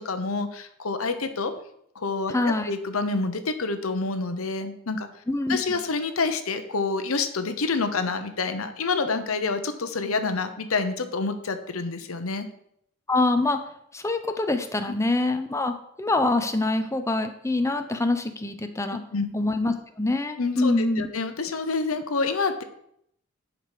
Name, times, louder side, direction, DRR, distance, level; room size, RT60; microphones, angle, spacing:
voice 1, 0.0-1.5 1.9-5.1 5.5-12.5 19.1-19.3 20.4-22.6, left 4 dB, 85° left, 9 dB, 0.9 m, -28 dB
voice 2, 2.3-2.7 5.3-5.8 13.1-13.6 13.9-19.0 19.3-21.1, left 2 dB, 15° left, 7 dB, 0.7 m, -25 dB
11.0 x 5.0 x 4.9 m, 0.73 s
head